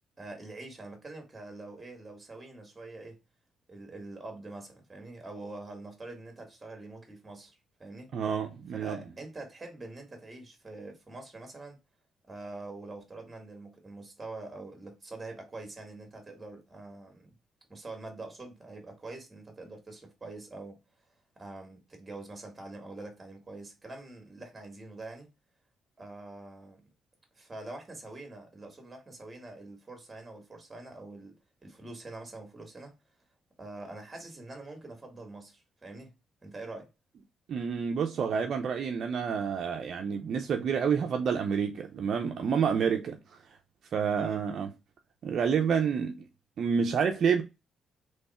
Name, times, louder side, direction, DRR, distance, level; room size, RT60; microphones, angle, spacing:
voice 1, 0.2-3.2 3.7-8.1 8.7-11.8 12.3-17.4 17.7-20.8 21.4-25.3 26.0-26.8 27.3-32.9 33.6-36.1 36.4-36.9 44.1-44.4, right 2 dB, 20° right, 2.0 m, -45 dB
voice 2, 8.1-9.0 37.5-43.4 43.9-44.7 45.2-46.3 46.6-47.4, right 6 dB, 60° right, 0.6 m, -28 dB
3.4 x 3.2 x 4.2 m
cardioid pair, 90°, 0 cm